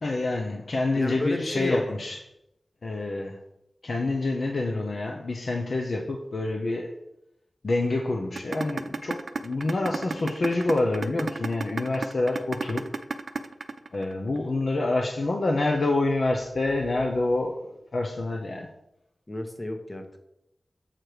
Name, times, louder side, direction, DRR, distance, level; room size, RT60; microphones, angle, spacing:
voice 1, 0.0-2.2 2.8-3.4 3.8-6.9 7.6-12.9 13.9-18.7, left 2 dB, 70° left, 1 dB, 0.8 m, -27 dB
voice 2, 0.9-1.8 19.3-20.2, left 1 dB, 35° left, 5 dB, 1.3 m, -31 dB
sound 1, 8.4-14.4, right 4 dB, 70° right, 0.5 m, -31 dB
7.6 x 4.7 x 4.9 m, 0.82 s
cardioid pair, 50°, 0 cm